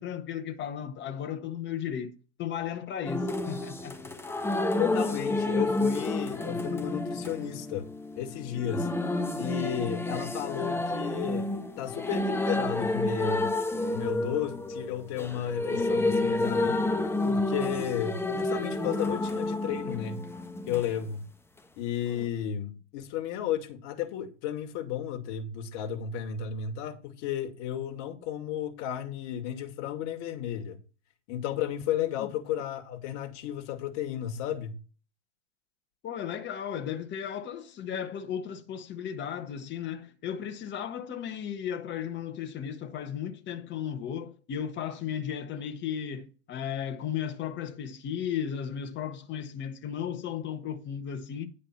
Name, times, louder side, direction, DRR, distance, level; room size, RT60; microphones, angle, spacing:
voice 1, 0.0-3.9 32.2-32.3 36.0-51.5, left 8 dB, 30° left, 1.5 m, -35 dB
sound 1, 3.0-20.9 22.1-22.3, left 2 dB, 5° left, 1.1 m, -30 dB
voice 2, 4.8-7.9 8.2-8.9 9.4-11.5 11.8-13.5 13.9-16.8 17.2-20.2 20.7-21.2 21.8-30.8 31.3-34.8, left 10 dB, 50° left, 2.1 m, -33 dB
10.5 x 5.0 x 5.8 m
hypercardioid pair, 110°, 36 cm